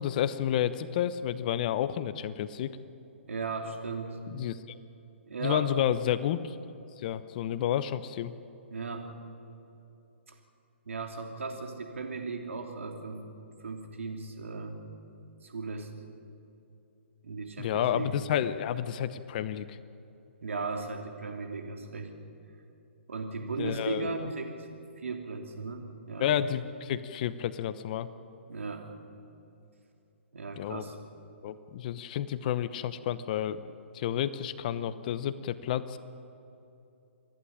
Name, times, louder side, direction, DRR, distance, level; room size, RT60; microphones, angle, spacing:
voice 1, 0.0-2.8 4.3-4.8 5.4-6.6 7.0-8.3 17.6-19.8 23.6-24.3 26.2-28.1 30.6-30.8 31.4-33.6 33.9-36.0, left 10 dB, 40° left, 14 dB, 0.9 m, -30 dB
voice 2, 3.3-4.2 5.3-5.7 8.7-9.1 10.3-10.4 10.9-13.2 13.6-14.8 15.4-15.9 17.2-18.1 20.4-22.1 23.1-24.5 25.0-26.3 28.5-28.9 30.3-30.9, right 4 dB, 80° right, 3 dB, 3.0 m, -36 dB
27.5 x 11.5 x 10.0 m, 2.8 s
hypercardioid pair, 145°, 7 cm